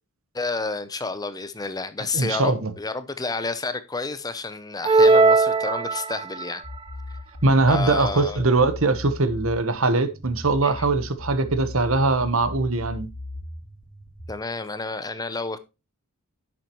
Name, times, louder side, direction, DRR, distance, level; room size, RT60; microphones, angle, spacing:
voice 1, 0.3-6.6 7.7-8.6 10.6-10.7 14.3-15.6, left 3 dB, 15° left, 0.7 m, -30 dB
voice 2, 2.1-2.7 7.4-13.1, right 3 dB, 60° right, 1.1 m, -21 dB
sound 1, 4.8-6.5, right 3 dB, 25° right, 0.7 m, -18 dB
sound 2, 6.6-14.3, left 2 dB, 80° left, 3.4 m, -37 dB
10.5 x 7.5 x 3.0 m
head